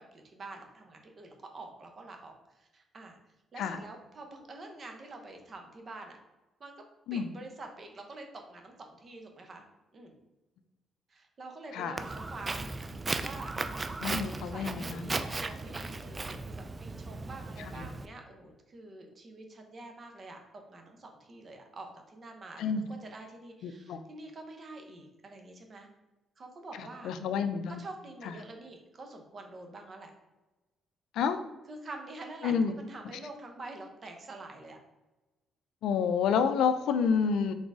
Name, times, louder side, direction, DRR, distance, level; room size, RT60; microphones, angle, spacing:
voice 1, 0.0-3.2 3.5-6.2 6.6-6.7 7.1-9.6 9.9-10.2 11.1-12.7 13.2-13.5 14.3-25.9 26.4-27.1 27.8-30.1 31.7-34.8, right 2 dB, 40° right, 3 dB, 0.9 m, -47 dB
Walk footsteps, 12.0-18.1, right 3 dB, 25° right, 0.3 m, -36 dB
voice 2, 14.0-15.1 17.8-17.9 22.6-22.8 23.6-24.0 27.0-27.9 31.1-31.4 32.4-32.7 35.8-37.5, left 6 dB, 85° left, 10 dB, 0.3 m, -29 dB
3.9 x 3.9 x 3.5 m, 1.0 s
cardioid pair, 90°, 0 cm